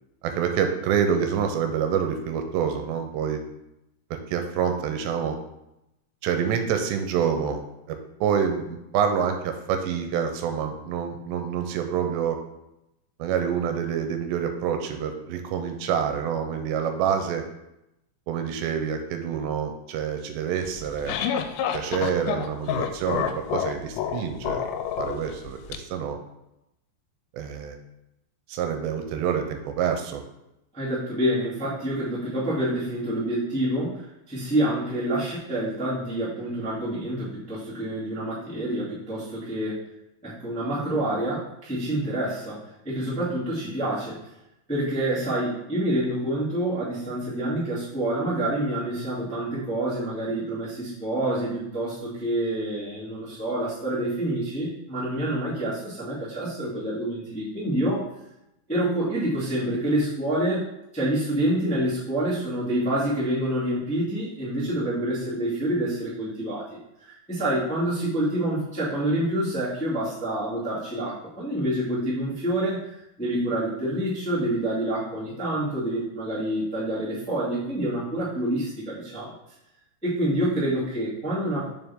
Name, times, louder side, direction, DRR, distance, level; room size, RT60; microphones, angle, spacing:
voice 1, 0.2-3.4 4.1-5.4 6.2-7.6 7.9-12.4 13.2-17.4 18.3-21.2 21.7-24.6 25.0-26.2 27.3-27.8 28.5-30.2, right 7 dB, 85° right, 6 dB, 2.9 m, -27 dB
sound 1, 20.7-25.8, left 9 dB, 90° left, 2.8 m, -29 dB
voice 2, 30.7-39.8 40.2-44.2 44.7-58.0 58.7-60.7 60.9-66.6 67.0-79.3 80.0-81.7, right 1 dB, 5° left, -10 dB, 1.4 m, -27 dB
7.1 x 6.3 x 3.6 m, 0.88 s
omnidirectional pair, 5.0 m